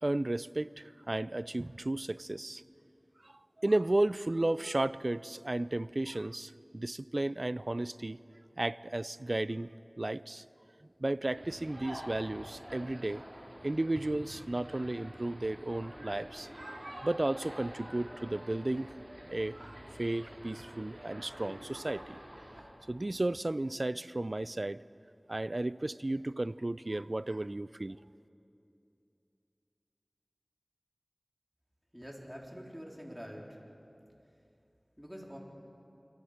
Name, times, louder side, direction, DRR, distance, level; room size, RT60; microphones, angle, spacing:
voice 1, 0.0-2.6 3.6-8.2 8.6-9.7 10.0-10.4 11.0-13.2 13.6-18.9 19.3-22.2 22.9-24.8 25.3-28.0, right 2 dB, 55° right, 17 dB, 0.4 m, -33 dB
sound 1, 11.3-22.6, equal, 30° right, 5.1 m, -48 dB
voice 2, 31.9-33.5 35.0-35.4, equal, 5° right, -2 dB, 4.0 m, -45 dB
29.0 x 23.5 x 5.1 m, 2.7 s
wide cardioid pair, 40°, 0 cm